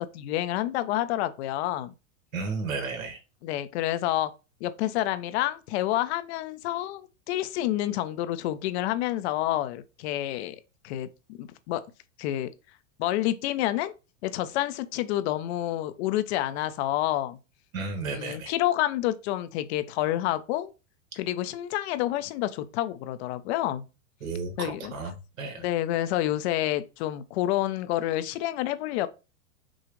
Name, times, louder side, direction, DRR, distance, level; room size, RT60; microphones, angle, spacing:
voice 1, 0.0-1.9 3.4-4.3 4.6-10.6 10.8-11.8 12.2-12.5 13.0-13.9 14.2-17.4 18.2-20.7 21.2-23.9 24.6-24.9 25.6-29.1, left 14 dB, 55° left, 0.7 m, -28 dB
voice 2, 2.3-3.2 17.7-18.5 24.2-25.1 25.4-25.7, right 4 dB, 85° right, 1.8 m, -33 dB
6.2 x 2.4 x 3.1 m
hypercardioid pair, 120°, 40 cm